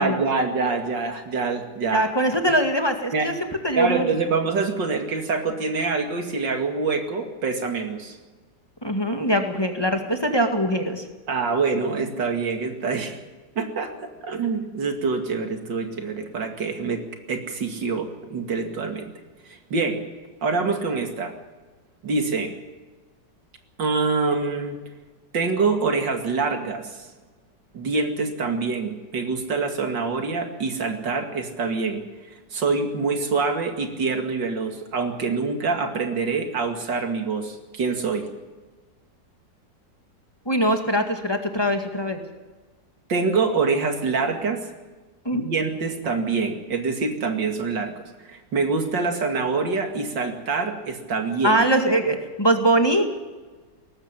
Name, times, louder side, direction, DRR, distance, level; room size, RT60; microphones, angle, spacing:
voice 1, 0.0-2.1 3.1-3.3 3.8-8.2 11.3-13.2 13.6-17.0 17.3-19.1 19.5-20.0 20.4-21.3 22.0-22.5 23.8-24.8 25.3-27.1 27.7-32.0 32.5-38.3 43.1-44.6 45.3-47.9 48.2-51.6, right 4 dB, 80° right, 5 dB, 2.9 m, -25 dB
voice 2, 1.9-3.3 3.6-4.1 8.8-11.0 40.5-42.2 45.3-45.5 51.4-53.0, right 1 dB, 15° left, 5 dB, 1.9 m, -22 dB
18.5 x 14.5 x 10.0 m, 1.3 s
omnidirectional pair, 1.9 m